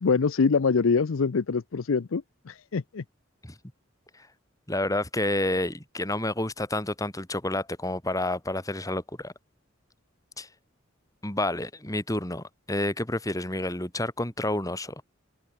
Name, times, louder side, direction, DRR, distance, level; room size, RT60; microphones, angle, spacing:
voice 1, 0.0-3.0, left 5 dB, 85° left, 0.6 m, -24 dB
voice 2, 4.7-9.3 10.4-10.5 11.2-14.9, left 1 dB, 15° left, 2.9 m, -29 dB
open air
head